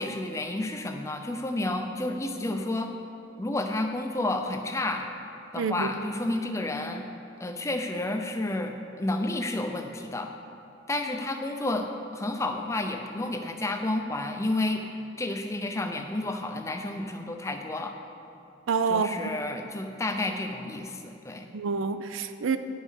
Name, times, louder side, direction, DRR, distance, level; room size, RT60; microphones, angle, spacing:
voice 1, 0.0-2.9 3.4-5.1 5.5-7.1 7.4-10.3 10.9-14.8 15.2-18.0 18.9-21.5, left 2 dB, 15° left, 5 dB, 0.5 m, -31 dB
voice 2, 5.6-5.9 18.7-19.1 21.5-22.6, right 5 dB, 80° right, 10 dB, 0.4 m, -27 dB
9.5 x 5.4 x 6.3 m, 2.7 s
head